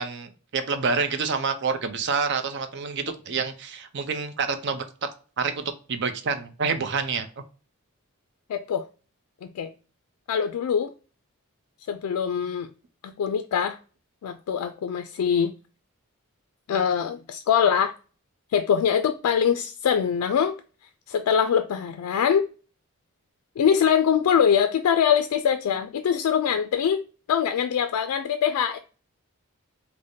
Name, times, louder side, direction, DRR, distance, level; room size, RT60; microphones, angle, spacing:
voice 1, 0.0-4.9 5.4-7.3, right 5 dB, 50° right, 0.5 m, -27 dB
voice 2, 8.5-8.8 9.4-9.7 10.3-10.9 11.9-12.7 13.0-13.8 14.2-15.5 16.7-17.9 18.5-20.5 21.1-22.5 23.6-27.0 27.3-28.8, left 8 dB, 90° left, 0.3 m, -23 dB
4.9 x 2.1 x 2.6 m
head